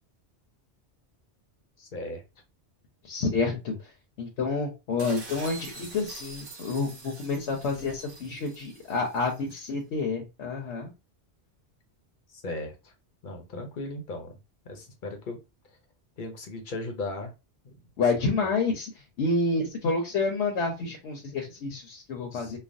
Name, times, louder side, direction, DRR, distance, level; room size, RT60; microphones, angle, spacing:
voice 1, 1.8-2.2 3.2-3.3 12.4-12.7 13.2-14.3 14.7-15.4 16.2-17.3 17.6-17.7 22.3-22.5, left 2 dB, 50° left, 4 dB, 0.8 m, -36 dB
voice 2, 3.0-3.9 4.2-10.9 18.0-22.6, left 3 dB, 80° left, 1 dB, 1.0 m, -29 dB
sound 1, 5.0-9.7, right 3 dB, 55° right, 0.8 m, -45 dB
3.2 x 2.2 x 2.5 m, 0.27 s
omnidirectional pair, 1.2 m